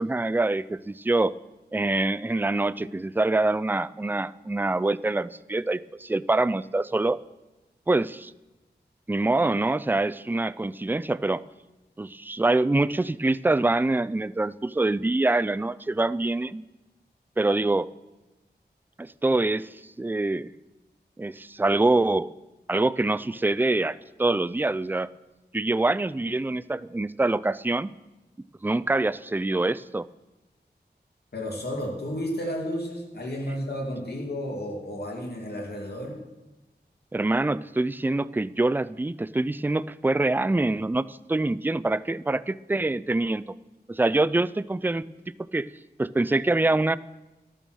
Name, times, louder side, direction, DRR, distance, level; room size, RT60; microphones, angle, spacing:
voice 1, 0.0-1.3 1.7-7.2 7.9-8.3 9.1-11.4 12.0-16.6 17.4-17.9 19.0-19.7 20.0-20.5 21.2-22.3 22.7-25.1 25.5-27.9 28.6-30.1 37.1-43.5 43.9-45.1 45.5-45.7 46.0-47.0, right 2 dB, 10° right, 17 dB, 0.3 m, -25 dB
voice 2, 31.3-36.2, equal, 65° left, 0 dB, 2.5 m, -32 dB
12.5 x 9.0 x 6.3 m, 1.0 s
wide cardioid pair, 75°, 18 cm